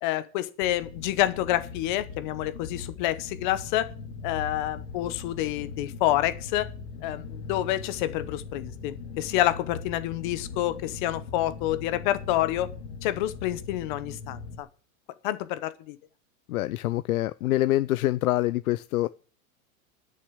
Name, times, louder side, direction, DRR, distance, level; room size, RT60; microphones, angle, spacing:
voice 1, 0.0-3.9 4.2-6.7 7.0-12.7 13.0-14.7 15.2-16.0, left 14 dB, 35° left, 0.8 m, -28 dB
sound 1, 0.6-14.6, left 5 dB, 65° left, 2.2 m, -40 dB
voice 2, 16.5-19.1, left 16 dB, 80° left, 0.7 m, -25 dB
11.5 x 6.7 x 8.7 m
supercardioid pair, 170°, 42 cm